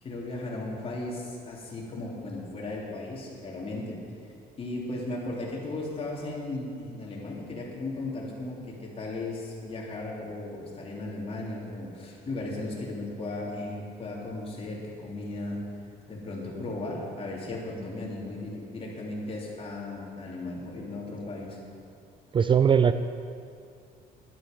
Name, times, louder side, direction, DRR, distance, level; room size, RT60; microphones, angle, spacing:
voice 1, 0.0-4.0 4.6-15.6 16.1-21.6, left 2 dB, 35° left, -3 dB, 3.2 m, -36 dB
voice 2, 22.3-22.9, right 7 dB, 30° right, 10 dB, 0.4 m, -20 dB
12.0 x 11.5 x 5.3 m, 2.4 s
cardioid pair, 110°, 17 cm